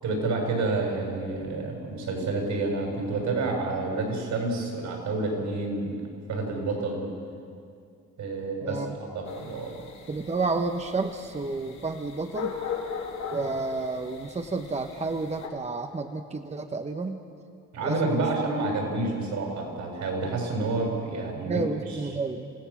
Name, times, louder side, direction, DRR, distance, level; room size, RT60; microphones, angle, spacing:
voice 1, 0.0-6.0 6.3-7.1 8.2-8.8 9.1-9.7 17.7-21.6, right 3 dB, 75° right, 1 dB, 7.2 m, -29 dB
voice 2, 8.6-9.0 10.1-12.5 13.3-17.2 17.8-18.3 21.4-22.5, right 3 dB, 20° right, 5 dB, 1.1 m, -30 dB
sound 1, 9.2-15.5, left 6 dB, 65° left, 4.0 m, -39 dB
27.5 x 16.5 x 7.3 m, 2.3 s
cardioid pair, 90°, 30 cm